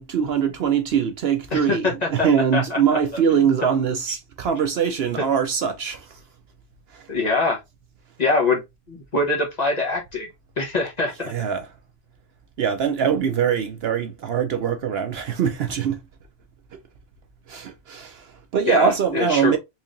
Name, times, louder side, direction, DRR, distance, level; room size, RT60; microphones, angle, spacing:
voice 1, 0.0-6.2 6.9-7.0 11.2-11.7 12.6-16.0 17.5-19.6, right 7 dB, 60° right, 0.8 m, -23 dB
voice 2, 1.5-2.3 2.5-2.8 7.1-7.6 8.2-8.6 8.9-10.3 10.6-11.3 18.7-19.6, left 3 dB, 35° left, 1.2 m, -23 dB
4.4 x 2.9 x 2.5 m
omnidirectional pair, 1.2 m